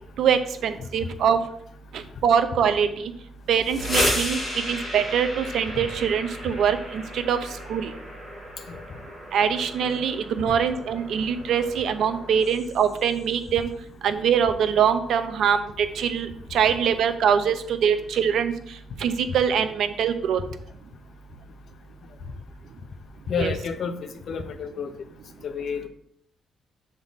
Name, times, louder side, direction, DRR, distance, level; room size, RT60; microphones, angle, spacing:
voice 1, 0.2-1.4 1.9-3.1 3.5-4.4 4.7-7.4 7.7-7.9 9.3-13.7 14.0-18.5 19.0-20.4 23.4-23.5, right 7 dB, 65° right, 10 dB, 0.6 m, -23 dB
sound 1, 3.5-13.2, equal, 15° left, 1.8 m, -33 dB
voice 2, 23.3-24.9 25.4-25.9, left 6 dB, 50° left, 9 dB, 0.6 m, -30 dB
7.2 x 3.7 x 4.0 m, 0.69 s
cardioid pair, 155°, 0 cm